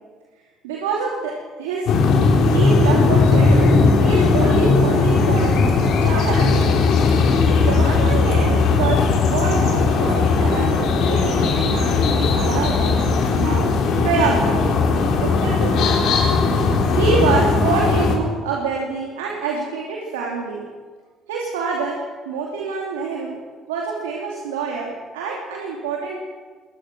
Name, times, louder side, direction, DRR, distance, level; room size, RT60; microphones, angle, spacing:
voice 1, 0.6-1.9 2.4-5.6 6.0-6.8 7.6-12.9 13.3-13.6 14.0-14.6 15.2-16.1 16.9-20.6 21.3-22.0 22.2-23.3 23.7-26.2, right 5 dB, 90° right, -2 dB, 2.9 m, -26 dB
sound 1, 1.9-18.2, left 4 dB, 65° left, 3.9 m, -17 dB
21.5 x 20.0 x 6.2 m, 1.5 s
hypercardioid pair, 60°, 0 cm